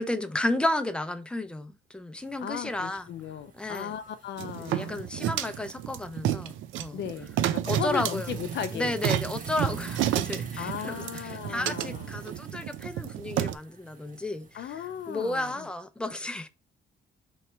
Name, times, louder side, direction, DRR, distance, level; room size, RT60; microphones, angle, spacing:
voice 1, 0.0-3.1 3.5-3.9 4.6-7.0 7.7-8.3 8.7-16.5, left 1 dB, 5° left, 0.5 m, -32 dB
sound 1, 2.2-15.5, right 4 dB, 40° right, 1.0 m, -47 dB
voice 2, 2.4-5.1 6.9-9.0 10.6-12.1 14.5-15.6, left 9 dB, 65° left, 0.4 m, -36 dB
sound 2, 4.4-13.5, right 12 dB, 75° right, 0.4 m, -31 dB
3.1 x 2.9 x 4.4 m
cardioid pair, 90°, 20 cm